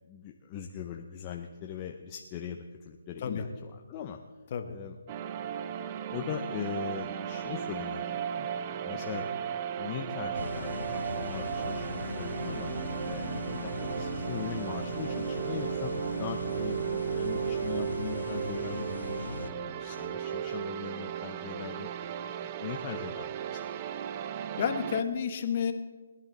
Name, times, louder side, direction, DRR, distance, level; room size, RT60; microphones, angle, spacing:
voice 1, 0.1-4.2 4.7-5.0 6.1-8.5 8.8-9.3 9.8-12.7 13.1-21.9 22.4-23.6, left 8 dB, 25° left, 2 dB, 0.7 m, -40 dB
sound 1, 5.1-25.0, right 9 dB, 25° right, 0.5 m, -35 dB
sound 2, 10.3-19.5, left 3 dB, 90° left, 1.0 m, -39 dB
voice 2, 13.3-13.6 24.6-25.7, left 7 dB, 40° left, 6 dB, 1.4 m, -31 dB
21.0 x 11.0 x 4.1 m, 1.4 s
hypercardioid pair, 160°, 0 cm